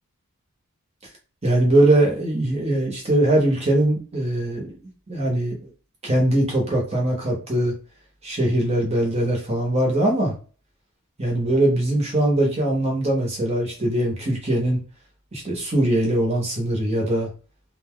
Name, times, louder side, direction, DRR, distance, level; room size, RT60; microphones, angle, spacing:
voice 1, 1.4-4.7 5.1-5.5 6.0-7.7 8.2-10.3 11.2-14.8 15.3-17.3, right 1 dB, 30° right, -1 dB, 0.9 m, -21 dB
2.6 x 2.2 x 3.6 m, 0.37 s
head